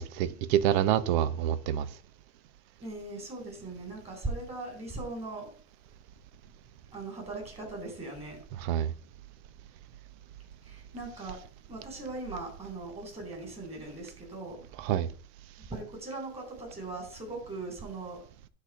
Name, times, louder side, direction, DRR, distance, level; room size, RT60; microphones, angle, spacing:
voice 1, 0.0-1.9 8.6-8.9 14.8-15.1, right 11 dB, 60° right, 0.9 m, -27 dB
voice 2, 2.8-5.5 6.9-8.4 10.6-11.4 11.7-14.6 15.7-18.2, right 2 dB, 20° right, 4.3 m, -39 dB
11.0 x 4.3 x 6.8 m
supercardioid pair, 135°, 34 cm